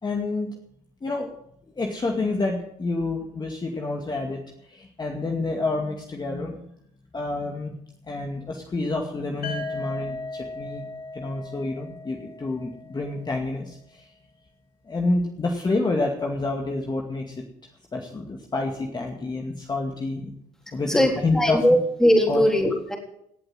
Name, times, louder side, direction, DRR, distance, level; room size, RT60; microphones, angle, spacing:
voice 1, 0.0-0.5 1.0-1.3 1.8-6.7 7.1-7.7 8.1-10.9 11.1-14.1 14.9-17.3 17.9-20.3 20.7-21.7 22.3-22.5, left 2 dB, 25° left, 1 dB, 2.3 m, -28 dB
sound 1, 9.4-13.3, left 3 dB, 60° left, 3.7 m, -37 dB
voice 2, 20.9-23.0, equal, 5° left, 1 dB, 3.7 m, -20 dB
18.0 x 7.9 x 7.8 m, 0.73 s
cardioid pair, 110°, 17 cm